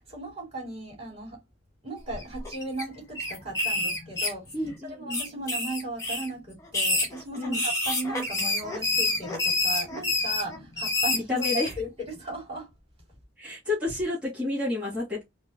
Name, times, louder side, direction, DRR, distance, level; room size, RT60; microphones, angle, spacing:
voice 1, 0.0-1.4 1.8-4.5 4.8-11.5 11.8-12.7, right 2 dB, 30° right, 2.7 m, -37 dB
sound 1, 2.1-2.8 3.1-4.7 5.1-6.3 6.7-11.7, left 2 dB, 15° left, 1.0 m, -28 dB
voice 2, 4.5-5.3 7.4-7.6 11.1-11.7 13.4-15.2, left 2 dB, 5° right, 2.1 m, -30 dB
4.8 x 2.3 x 2.6 m
head